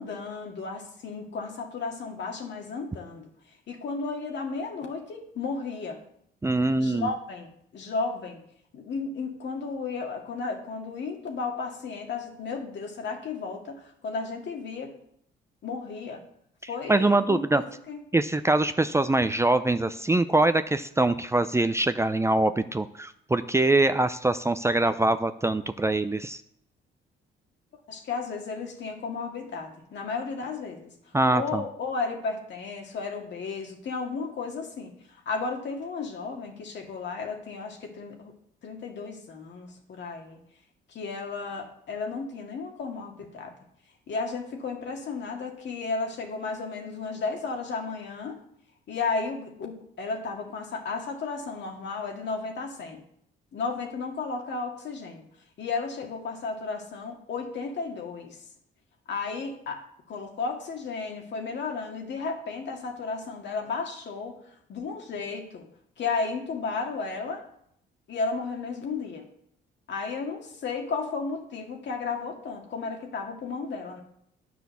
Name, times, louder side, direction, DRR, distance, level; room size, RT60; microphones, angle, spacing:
voice 1, 0.0-6.0 6.6-8.4 8.7-14.9 15.6-16.2 16.7-18.0 27.9-38.3 38.6-40.4 40.9-43.5 44.1-48.4 48.9-53.0 53.5-55.3 55.6-58.5 59.1-59.8 60.1-64.4 64.7-65.7 66.0-67.4 68.1-69.3 69.9-74.0, left 4 dB, 65° left, 2 dB, 2.2 m, -34 dB
voice 2, 6.4-7.1 16.9-17.6 18.1-26.4 31.1-31.6, right 2 dB, 15° right, 10 dB, 0.5 m, -23 dB
9.8 x 6.2 x 6.9 m, 0.70 s
cardioid pair, 90°, 20 cm